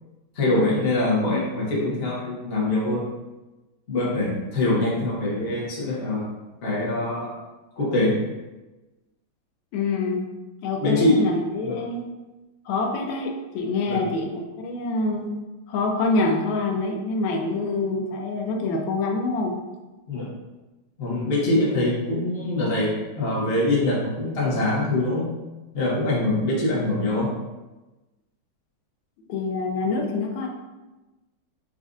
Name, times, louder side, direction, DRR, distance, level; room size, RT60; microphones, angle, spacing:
voice 1, 0.3-3.0 3.9-6.3 6.6-7.3 7.8-8.2 10.8-11.3 11.6-11.8 13.9-14.0 20.1-20.3 21.0-25.3 25.7-27.3, left 2 dB, 45° left, -5 dB, 0.8 m, -23 dB
voice 2, 9.7-10.2 10.6-12.1 12.6-15.3 15.7-19.6 29.3-30.5, left 3 dB, 80° left, 3 dB, 1.3 m, -26 dB
5.1 x 2.4 x 2.5 m, 1.1 s
omnidirectional pair, 2.1 m